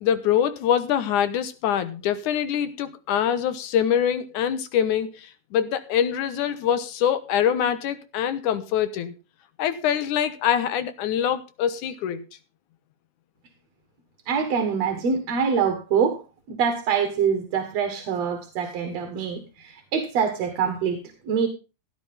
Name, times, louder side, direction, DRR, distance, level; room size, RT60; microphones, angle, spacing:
voice 1, 0.0-9.1 9.6-12.2, left 9 dB, 85° left, 2.6 m, -24 dB
voice 2, 14.3-16.2 16.5-21.0 21.3-21.5, right 6 dB, 60° right, 2.6 m, -25 dB
16.0 x 10.0 x 3.6 m
omnidirectional pair, 3.5 m